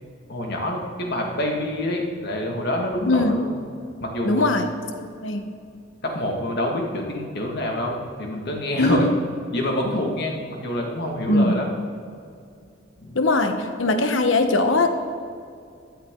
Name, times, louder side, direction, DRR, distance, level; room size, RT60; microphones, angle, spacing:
voice 1, 0.3-3.5 4.0-4.6 6.0-9.1 9.5-11.7 13.0-13.2, left 1 dB, 55° left, 0 dB, 2.0 m, -26 dB
voice 2, 3.1-3.4 4.2-4.7 5.0-5.5 8.8-9.1 11.3-11.5 13.1-14.9, left 2 dB, 80° left, 7 dB, 1.1 m, -20 dB
16.0 x 12.0 x 3.8 m, 2.3 s
head